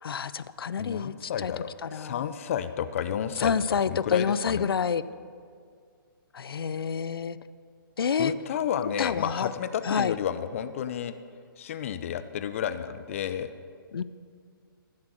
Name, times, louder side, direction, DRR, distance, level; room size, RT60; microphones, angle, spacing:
voice 1, 0.0-1.5 1.8-2.3 3.4-5.0 6.3-7.4 8.0-8.3 9.0-9.5 9.8-10.2 13.9-14.0, left 6 dB, 85° left, 16 dB, 0.5 m, -28 dB
voice 2, 0.8-3.5 3.9-4.6 8.2-11.2 11.6-13.5, left 9 dB, 35° left, 11 dB, 0.5 m, -31 dB
15.5 x 7.4 x 6.3 m, 2.2 s
hypercardioid pair, 160°, 12 cm